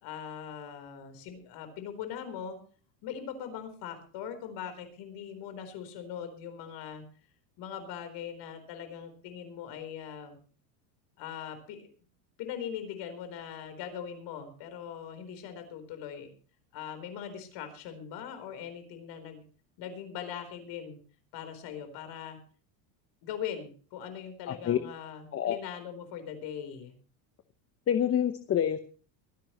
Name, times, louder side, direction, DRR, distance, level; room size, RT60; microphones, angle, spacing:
voice 1, 0.0-2.6 3.0-7.0 7.6-10.4 11.2-11.9 12.4-16.3 16.7-19.4 19.8-21.0 21.3-22.4 23.2-26.9, left 8 dB, 60° left, 8 dB, 4.2 m, -41 dB
voice 2, 24.5-24.8 25.3-25.6 27.9-28.8, left 9 dB, 30° left, 9 dB, 1.0 m, -27 dB
24.0 x 10.5 x 3.1 m, 0.40 s
supercardioid pair, 125°, 47 cm